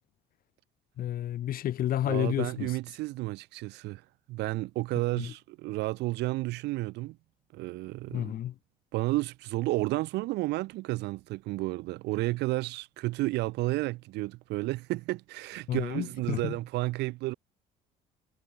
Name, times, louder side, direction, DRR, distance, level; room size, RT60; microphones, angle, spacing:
voice 1, 1.0-2.7 5.2-5.3 8.1-8.5 15.7-16.6, left 12 dB, 60° left, 1.3 m, -31 dB
voice 2, 2.0-4.0 4.3-7.2 7.5-8.3 8.9-17.3, right 20 dB, 90° right, 4.3 m, -32 dB
cardioid pair, 110°, 17 cm